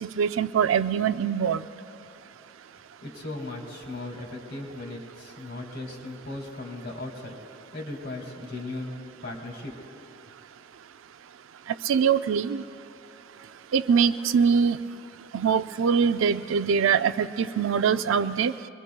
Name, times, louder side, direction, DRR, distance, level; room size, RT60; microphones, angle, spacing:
voice 1, 0.0-1.6 11.9-12.6 13.7-14.8 15.3-18.5, right 6 dB, 75° right, 12 dB, 0.4 m, -23 dB
voice 2, 3.0-9.8, left 2 dB, 55° left, 0 dB, 2.2 m, -37 dB
25.5 x 21.0 x 2.3 m, 3.0 s
head